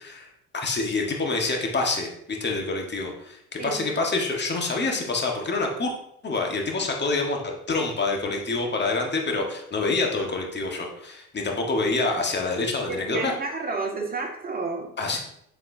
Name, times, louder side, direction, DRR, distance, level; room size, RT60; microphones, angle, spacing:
voice 1, 0.0-5.9 6.2-7.4 7.7-13.3 15.0-15.2, left 3 dB, 25° left, 1 dB, 1.7 m, -27 dB
voice 2, 12.9-14.9, right 3 dB, 20° right, 0 dB, 2.0 m, -30 dB
8.1 x 7.5 x 2.8 m, 0.74 s
figure-of-eight pair, 55°, 45 cm